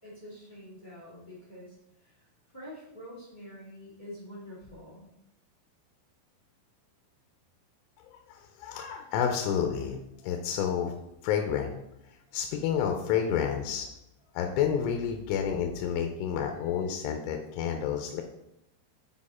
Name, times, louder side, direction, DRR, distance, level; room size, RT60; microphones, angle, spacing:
voice 1, 0.0-5.1, equal, 15° left, -6 dB, 1.5 m, -47 dB
voice 2, 8.1-11.0 11.2-11.8 12.3-13.9 14.3-18.2, left 8 dB, 85° left, 4 dB, 3.1 m, -30 dB
8.6 x 4.8 x 4.2 m, 0.85 s
omnidirectional pair, 5.6 m